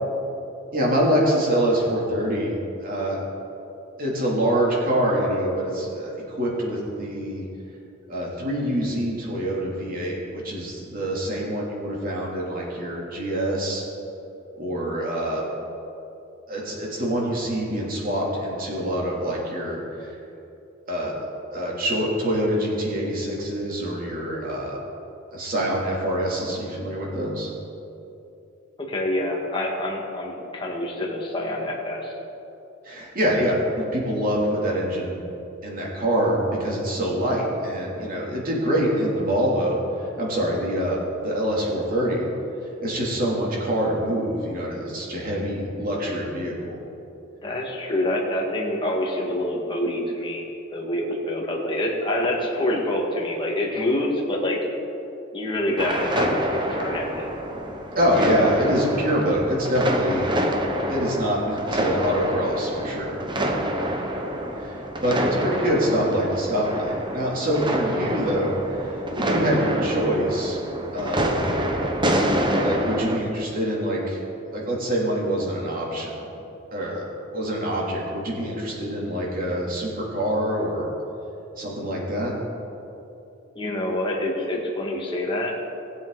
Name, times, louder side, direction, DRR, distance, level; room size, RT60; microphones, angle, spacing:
voice 1, 0.7-3.3 4.0-7.4 8.1-13.8 14.6-15.5 16.5-20.2 20.9-24.8 25.3-27.5 32.8-35.2 35.6-39.8 40.2-41.0 41.2-42.3 42.8-46.8 57.9-60.4 60.9-63.2 64.6-70.6 70.9-71.4 72.6-74.2 74.5-76.2 76.7-77.1 77.3-80.9 81.6-82.3, equal, 45° right, -4 dB, 2.8 m, -25 dB
voice 2, 28.8-32.2 47.4-50.5 50.7-54.7 55.3-57.4 83.6-85.6, left 1 dB, 25° left, -2 dB, 1.7 m, -26 dB
sound 1, 55.8-73.2, right 1 dB, 25° right, 0.9 m, -27 dB
19.5 x 7.8 x 3.9 m, 2.9 s
head